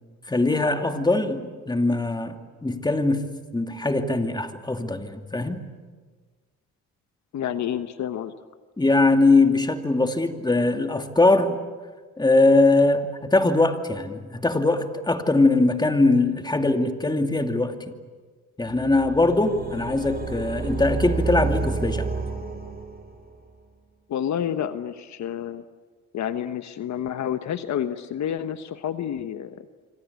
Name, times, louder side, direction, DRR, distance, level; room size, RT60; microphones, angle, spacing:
voice 1, 0.3-5.6 8.8-11.6 12.2-17.9 18.6-22.1, left 2 dB, 15° left, 6 dB, 2.6 m, -21 dB
voice 2, 7.3-8.3 24.1-25.6 26.1-29.7, left 9 dB, 65° left, 10 dB, 1.2 m, -29 dB
sound 1, 18.7-23.3, right 4 dB, 30° right, 5.6 m, -30 dB
27.0 x 25.0 x 8.4 m, 1.5 s
cardioid pair, 90°, 30 cm